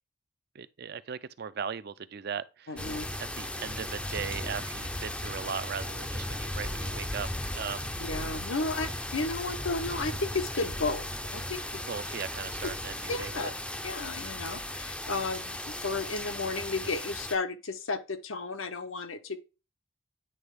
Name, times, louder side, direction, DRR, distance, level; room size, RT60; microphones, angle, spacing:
voice 1, 0.5-2.9 3.4-7.3 7.5-7.9 11.7-13.5, right 7 dB, 50° right, 0.4 m, -38 dB
voice 2, 2.7-3.1 8.0-11.6 13.1-13.5 13.8-19.4, left 3 dB, 80° left, 0.8 m, -33 dB
sound 1, 2.8-17.4, left 1 dB, 5° left, 0.5 m, -36 dB
9.7 x 3.4 x 3.5 m
head